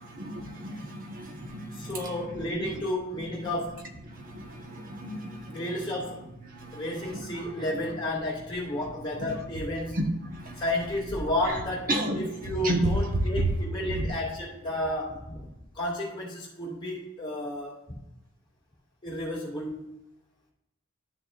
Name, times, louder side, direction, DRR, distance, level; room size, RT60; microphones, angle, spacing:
voice 1, 0.0-2.8 4.0-5.9 6.4-8.0 8.7-8.9 9.2-9.4 9.7-10.7 11.4-11.6 11.9-12.8 13.1-13.5 13.8-14.0, right 1 dB, 40° right, 2 dB, 1.2 m, -33 dB
voice 2, 1.7-3.8 5.5-6.3 6.7-10.0 10.6-11.9 12.1-15.4 15.7-17.8 19.0-19.8, left 1 dB, 20° left, -4 dB, 2.2 m, -32 dB
12.0 x 6.8 x 2.5 m, 0.91 s
head